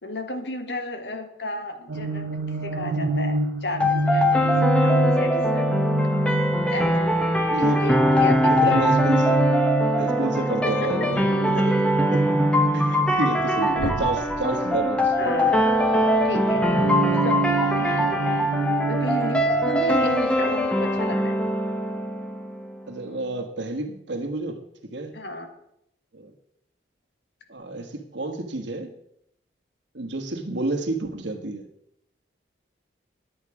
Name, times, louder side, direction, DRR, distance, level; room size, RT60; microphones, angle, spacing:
voice 1, 0.0-5.8 6.7-7.3 7.6-8.8 10.6-10.7 13.1-13.3 13.6-14.1 15.2-15.8 16.2-16.7 17.2-18.2 18.9-21.4 25.1-25.5, left 1 dB, 65° left, 6 dB, 1.4 m, -32 dB
sound 1, 1.9-7.0 8.2-13.3 13.7-15.7 16.1-20.2, right 2 dB, 90° right, 0.7 m, -27 dB
sound 2, 3.8-22.7, equal, 5° left, 0.9 m, -22 dB
voice 2, 7.5-7.9 8.5-9.4 10.0-11.8 12.1-12.3 12.7-15.1 22.9-24.6 24.9-25.1 26.1-26.3 27.5-28.9 29.9-31.7, right 2 dB, 70° right, 4 dB, 1.4 m, -30 dB
10.0 x 8.8 x 4.8 m, 0.76 s
head